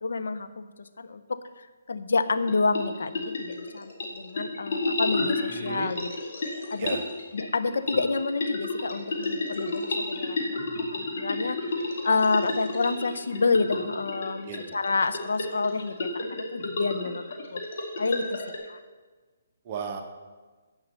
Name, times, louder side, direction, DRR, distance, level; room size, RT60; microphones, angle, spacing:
voice 1, 0.0-6.1 6.7-7.0 7.3-10.4 10.8-11.6 12.0-17.2 17.5-17.6 18.0-18.8, left 4 dB, 80° left, 11 dB, 0.7 m, -28 dB
sound 1, 2.3-18.6, left 2 dB, 50° left, 1.9 m, -32 dB
voice 2, 5.2-5.9 6.8-7.0 14.5-14.6 19.7-20.0, right 6 dB, 30° right, 3 dB, 1.0 m, -35 dB
9.7 x 5.5 x 6.8 m, 1.3 s
hypercardioid pair, 160°, 0 cm